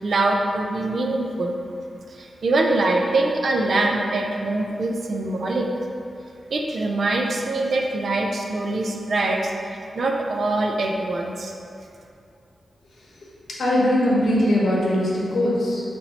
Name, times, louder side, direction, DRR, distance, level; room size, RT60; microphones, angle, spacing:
voice 1, 0.0-1.5 2.1-5.7 6.5-11.5, right 2 dB, 55° right, 1 dB, 0.3 m, -23 dB
voice 2, 13.6-15.8, left 1 dB, 80° left, -5 dB, 0.8 m, -20 dB
4.1 x 3.0 x 2.8 m, 2.6 s
wide cardioid pair, 155°, 0 cm